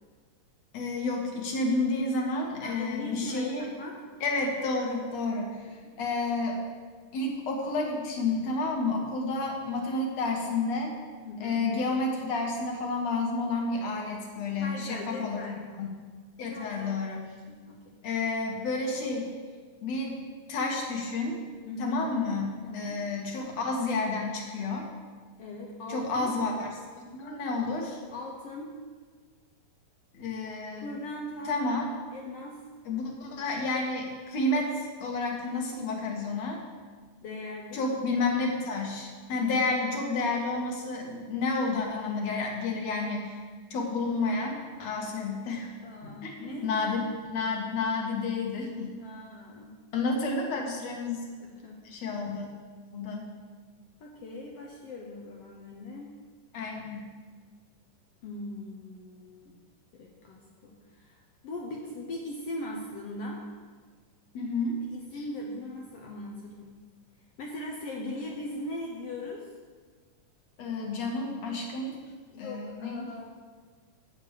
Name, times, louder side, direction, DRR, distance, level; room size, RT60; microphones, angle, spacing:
voice 1, 0.7-3.7 4.2-5.6 6.0-6.6 7.1-10.9 11.4-15.9 16.4-17.3 18.0-19.3 19.8-20.2 20.5-21.3 21.8-24.9 25.9-26.7 27.1-28.0 30.1-30.9 31.5-31.9 32.9-36.6 37.7-43.4 43.7-45.7 46.2-47.0 47.3-49.0 49.9-51.3 51.9-52.5 52.9-53.3 56.5-57.0 64.3-64.8 70.6-72.0 72.4-73.0, left 3 dB, 60° left, 0 dB, 2.3 m, -30 dB
voice 2, 2.6-4.0 5.7-5.8 11.2-11.6 14.6-15.6 16.5-17.0 17.5-17.9 21.6-22.1 22.6-23.0 25.4-26.3 28.1-28.7 30.8-31.6 32.1-32.6 37.2-37.8 45.8-47.1 49.0-49.7 51.4-51.8 54.0-56.1 58.2-59.6 59.9-63.4 64.8-66.7 67.4-69.5 72.3-73.2, left 1 dB, 75° left, 0 dB, 1.4 m, -40 dB
8.5 x 6.6 x 6.5 m, 1.5 s
omnidirectional pair, 3.9 m